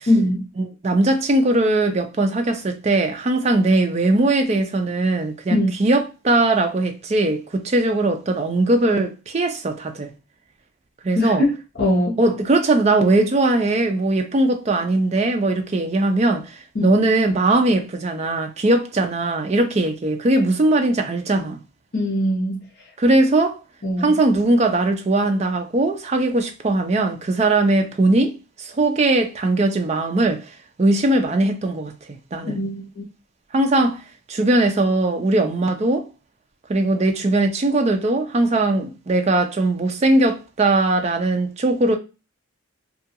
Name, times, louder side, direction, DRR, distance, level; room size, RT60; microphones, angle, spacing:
voice 1, 0.1-0.5 5.5-5.7 11.2-11.5 11.8-12.2 16.7-17.0 21.9-22.7 23.8-24.2 32.4-33.0, left 1 dB, 50° left, 0.7 m, -21 dB
voice 2, 0.6-10.1 11.0-11.4 12.2-21.6 23.0-23.6 24.0-30.5 30.8-32.6 33.5-34.0 34.3-36.1 36.7-42.0, right 2 dB, 30° right, 0.4 m, -20 dB
2.4 x 2.2 x 2.7 m
head